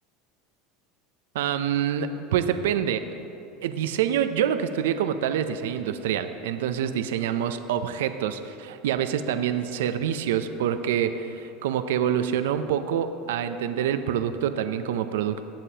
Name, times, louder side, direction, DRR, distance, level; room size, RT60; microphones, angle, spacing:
voice 1, 1.3-3.0 3.6-15.4, right 9 dB, 85° right, 9 dB, 0.5 m, -26 dB
18.0 x 7.3 x 2.8 m, 2.7 s
supercardioid pair, 120°, 0 cm